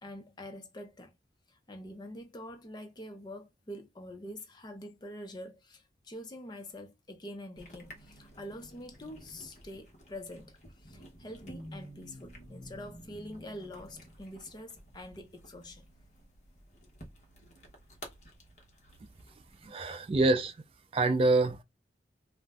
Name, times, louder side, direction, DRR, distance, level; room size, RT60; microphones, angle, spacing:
voice 1, 0.0-1.2 1.5-15.9, left 1 dB, 25° left, 0.5 m, -45 dB
sound 1, 7.5-19.7, equal, 40° left, 0.9 m, -52 dB
voice 2, 19.6-20.6 20.9-21.6, right 2 dB, 30° right, 0.3 m, -26 dB
2.5 x 2.1 x 3.3 m
head